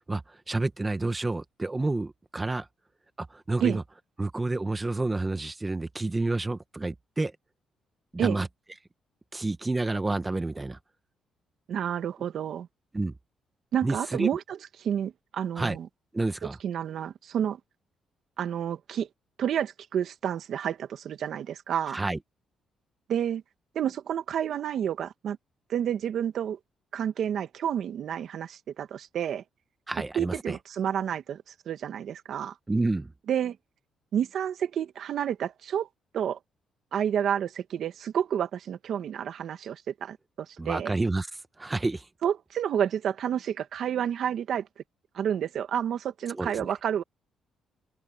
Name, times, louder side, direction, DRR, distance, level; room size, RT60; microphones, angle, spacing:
voice 1, 0.1-2.7 3.2-3.8 4.2-7.3 8.1-8.5 9.3-10.8 12.9-13.1 13.8-14.3 15.5-15.8 16.1-16.6 21.9-22.2 29.9-30.6 32.7-33.1 40.6-42.1 46.3-46.7, right 2 dB, 20° right, 1.3 m, -29 dB
voice 2, 11.7-12.7 13.7-15.9 16.6-17.6 18.4-19.1 19.4-22.0 23.1-23.4 23.7-25.4 25.7-26.6 26.9-29.4 30.1-32.5 33.3-33.6 34.1-35.9 36.1-36.4 36.9-40.2 40.6-40.9 42.2-44.7 45.1-47.0, right 9 dB, 65° right, 1.7 m, -29 dB
open air
cardioid pair, 90°, 0 cm